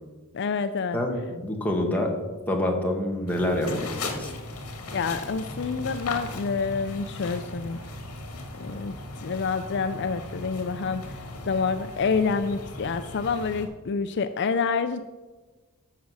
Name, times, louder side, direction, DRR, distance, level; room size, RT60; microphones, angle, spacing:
voice 1, 0.3-1.0 4.9-7.8 8.6-15.0, left 5 dB, 50° left, 10 dB, 0.5 m, -28 dB
voice 2, 0.9-2.1 2.5-4.3, left 1 dB, 5° left, 0 dB, 1.7 m, -27 dB
sound 1, 3.3-13.7, left 2 dB, 75° left, 1.9 m, -37 dB
13.5 x 6.1 x 6.4 m, 1.3 s
head